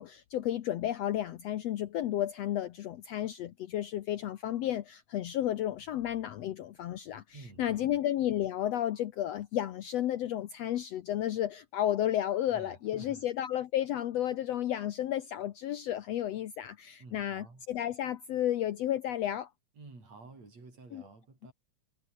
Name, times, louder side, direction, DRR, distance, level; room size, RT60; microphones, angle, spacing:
voice 1, 0.0-19.5 20.9-21.0, left 12 dB, 65° left, 1.9 m, -32 dB
voice 2, 7.3-8.0 12.5-13.3 17.0-17.7 19.8-21.5, right 3 dB, 60° right, 8.6 m, -51 dB
omnidirectional pair, 3.4 m